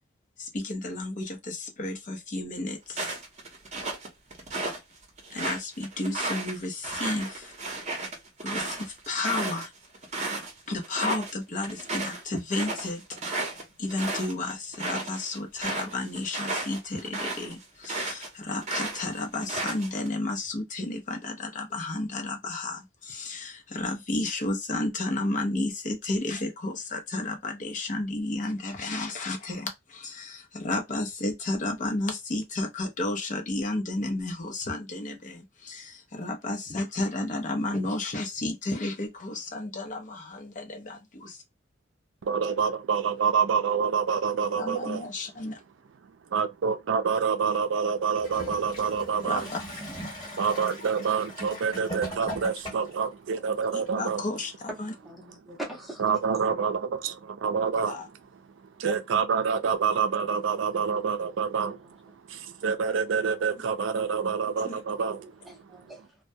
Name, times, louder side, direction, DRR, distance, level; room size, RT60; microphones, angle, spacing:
voice 1, 0.4-3.2 5.3-7.6 8.4-9.7 10.7-13.5 13.8-41.4 44.6-45.6 49.2-49.6 53.7-54.9 57.8-58.1 64.6-64.8, left 2 dB, 40° left, 0.6 m, -32 dB
sound 1, 2.9-4.8 5.2-10.5 10.8-11.3 11.6-18.3 18.6-20.1, right 2 dB, 40° right, 0.8 m, -33 dB
voice 2, 42.2-45.0 46.3-49.5 50.4-54.2 56.0-57.9 58.8-61.8 62.0-65.3, right 6 dB, 75° right, 0.4 m, -27 dB
Gurgling / Toilet flush, 48.2-53.0 53.9-54.0, equal, 20° left, 1.3 m, -39 dB
voice 3, 55.0-56.6 60.2-60.3 60.7-61.0 61.6-61.8 65.1-66.2, right 1 dB, ahead, 0.8 m, -43 dB
2.2 x 2.2 x 2.6 m
head